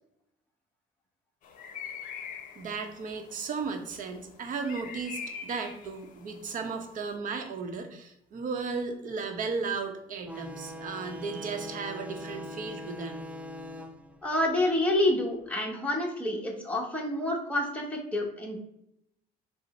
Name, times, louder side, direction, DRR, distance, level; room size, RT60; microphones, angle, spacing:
sound 1, 1.4-7.1, left 6 dB, 55° left, 0.7 m, -44 dB
voice 1, 2.6-13.2, right 4 dB, 50° right, 5 dB, 0.8 m, -35 dB
sound 2, 10.3-15.4, left 1 dB, 10° right, 0.4 m, -42 dB
voice 2, 14.2-18.6, left 1 dB, 10° left, 0 dB, 1.0 m, -28 dB
5.2 x 2.1 x 4.1 m, 0.79 s
cardioid pair, 110°, 17 cm